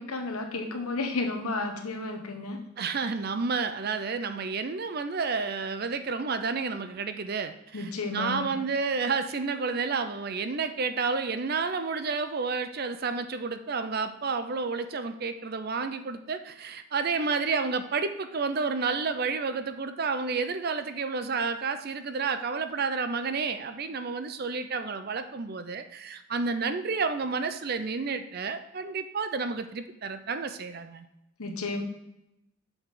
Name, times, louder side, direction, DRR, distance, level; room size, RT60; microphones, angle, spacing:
voice 1, 0.0-2.6 7.7-8.5 31.4-31.8, left 3 dB, 85° left, 4 dB, 1.2 m, -32 dB
voice 2, 2.8-31.1, right 4 dB, 45° right, 9 dB, 0.5 m, -30 dB
6.9 x 6.0 x 3.8 m, 0.86 s
head